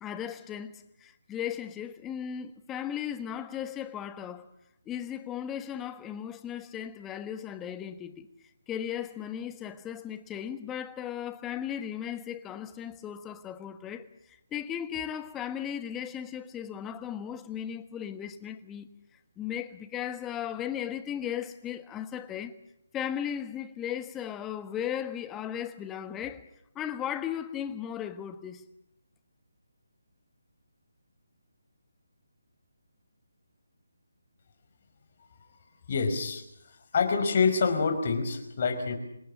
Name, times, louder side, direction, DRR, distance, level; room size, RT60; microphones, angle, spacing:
voice 1, 0.0-4.5 4.8-8.3 8.7-18.9 19.4-22.5 22.9-26.4 26.7-28.6, left 9 dB, 10° left, 1.4 m, -36 dB
voice 2, 35.9-36.4 36.9-39.0, left 5 dB, 40° left, 5.1 m, -26 dB
26.5 x 19.0 x 8.7 m
figure-of-eight pair, 155°, 0 cm